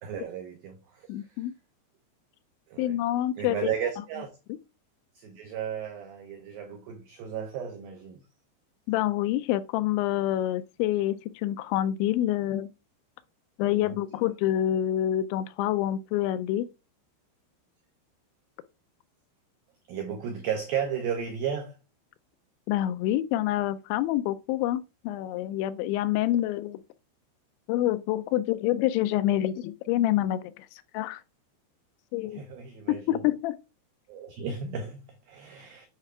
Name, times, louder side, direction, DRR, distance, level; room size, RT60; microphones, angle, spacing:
voice 1, 0.0-1.4 2.7-3.0 3.4-4.3 5.2-8.2 13.8-14.0 19.9-21.8 32.2-33.2 34.1-35.9, right 7 dB, 85° right, 2.0 m, -34 dB
voice 2, 1.1-1.5 2.8-3.7 8.9-12.7 13.6-16.7 22.7-26.8 27.7-31.2 32.1-32.4 32.9-33.6, left 13 dB, 85° left, 2.7 m, -27 dB
9.0 x 3.2 x 5.8 m
omnidirectional pair, 5.5 m